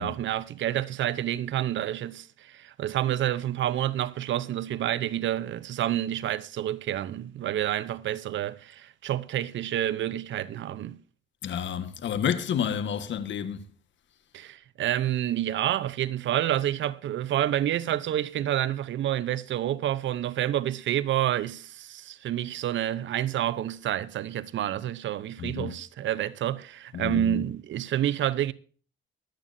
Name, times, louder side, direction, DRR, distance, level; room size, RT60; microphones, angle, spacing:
voice 1, 0.0-11.0 14.3-28.5, right 12 dB, 70° right, 0.8 m, -29 dB
voice 2, 11.4-13.7 25.4-25.7 26.9-27.4, left 8 dB, 70° left, 1.5 m, -30 dB
23.0 x 9.0 x 2.7 m
cardioid pair, 90°, 20 cm